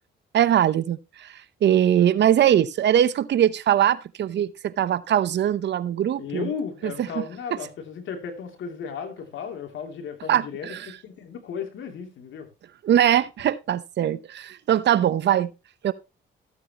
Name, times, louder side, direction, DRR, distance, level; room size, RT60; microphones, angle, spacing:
voice 1, 0.3-6.5 6.8-7.2 10.3-10.9 12.8-15.5 15.8-15.9, right 10 dB, 60° right, 0.8 m, -21 dB
voice 2, 6.2-12.5, left 6 dB, 75° left, 2.9 m, -35 dB
14.5 x 8.3 x 2.9 m
cardioid pair, 90°, 20 cm